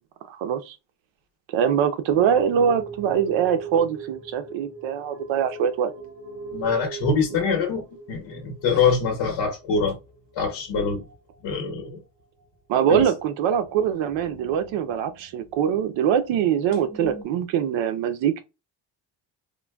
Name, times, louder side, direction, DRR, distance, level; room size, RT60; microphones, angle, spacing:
voice 1, 0.3-0.8 1.5-5.9 12.7-18.4, right 8 dB, 90° right, 0.7 m, -23 dB
sound 1, 2.1-10.6 10.9-11.5 11.8-11.9 12.4-12.5 13.5-15.7 16.0-16.1 16.3-17.2, right 4 dB, 25° right, 1.8 m, -41 dB
voice 2, 6.5-10.0 10.3-11.0 11.4-12.0 12.9-13.0, left 5 dB, 65° left, 1.0 m, -24 dB
3.8 x 2.2 x 2.2 m
cardioid pair, 165°, 44 cm